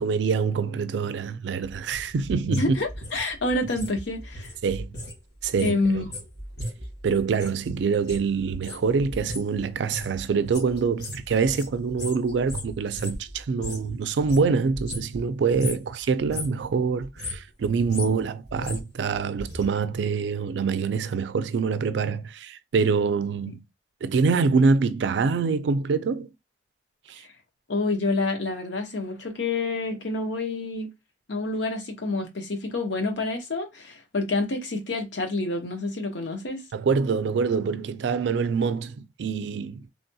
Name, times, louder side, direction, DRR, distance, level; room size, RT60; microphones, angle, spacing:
voice 1, 0.0-2.6 4.6-4.9 5.4-5.8 7.0-23.6 24.0-26.3 27.1-27.2 36.7-39.8, right 5 dB, 80° right, 0.3 m, -25 dB
sound 1, 1.6-5.2 5.4-13.9 14.2-15.3 15.5-15.9 16.2-16.6 17.0-19.7 19.9-20.0, equal, 70° left, 1.4 m, -36 dB
voice 2, 2.6-4.5 5.6-6.1 23.5-23.6 27.7-30.9 31.3-36.6, left 2 dB, 85° left, 0.9 m, -28 dB
3.3 x 2.2 x 2.7 m
head